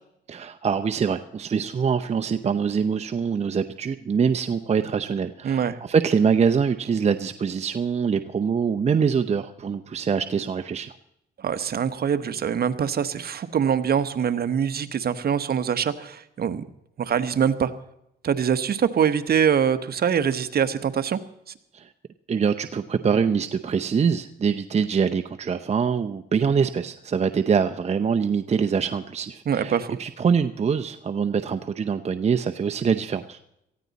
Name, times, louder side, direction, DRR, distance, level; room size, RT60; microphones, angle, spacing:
voice 1, 0.3-10.9 21.7-21.9 22.3-33.4, right 6 dB, 35° right, 7 dB, 0.8 m, -24 dB
voice 2, 5.4-5.8 11.4-16.6 17.0-17.7 18.2-21.2 29.5-29.9, right 8 dB, 50° right, 12 dB, 1.1 m, -24 dB
19.0 x 15.0 x 4.1 m, 0.79 s
cardioid pair, 90°, 20 cm